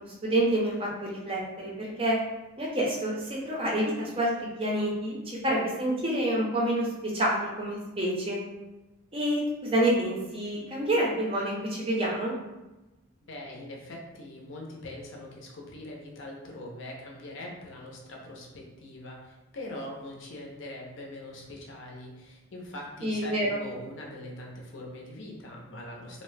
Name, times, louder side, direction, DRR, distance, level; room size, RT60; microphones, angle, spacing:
voice 1, 0.0-2.2 2.6-6.9 7.1-8.4 9.1-12.3 23.0-23.6, right 1 dB, 25° right, -4 dB, 0.5 m, -28 dB
voice 2, 13.2-26.2, left 1 dB, 60° left, -1 dB, 0.6 m, -42 dB
2.6 x 2.0 x 3.2 m, 1.0 s
head